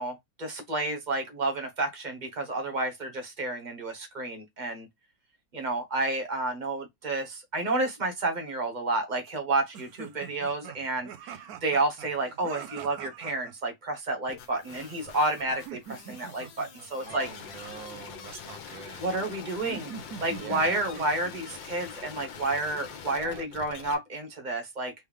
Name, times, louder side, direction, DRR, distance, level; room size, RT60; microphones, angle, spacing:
voice 1, 0.0-4.9 5.5-17.3 19.0-19.9 20.2-24.9, right 2 dB, 30° right, 0.9 m, -30 dB
sound 1, 9.7-13.5 15.5-16.9 19.7-21.2, right 8 dB, 65° right, 1.0 m, -44 dB
sound 2, 14.3-23.9, left 7 dB, 90° left, 1.6 m, -44 dB
voice 2, 17.0-19.1 20.4-20.8 23.1-23.5, right 7 dB, 90° right, 1.6 m, -43 dB
4.4 x 3.3 x 3.4 m
omnidirectional pair, 2.0 m